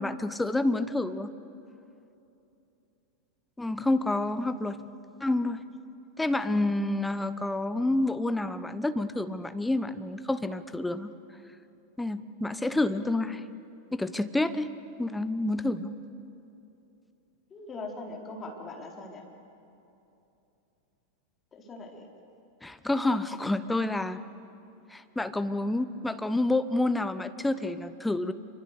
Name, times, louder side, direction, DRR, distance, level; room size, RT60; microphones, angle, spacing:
voice 1, 0.0-1.3 3.6-4.8 5.2-5.6 6.2-11.1 12.0-13.4 13.9-14.7 15.0-15.9 22.6-24.2 24.9-28.3, left 2 dB, 5° left, 12 dB, 1.0 m, -28 dB
voice 2, 17.5-19.2 21.5-22.1, left 2 dB, 20° left, 0 dB, 4.2 m, -41 dB
27.5 x 24.0 x 6.8 m, 2.9 s
figure-of-eight pair, 90°, 0 cm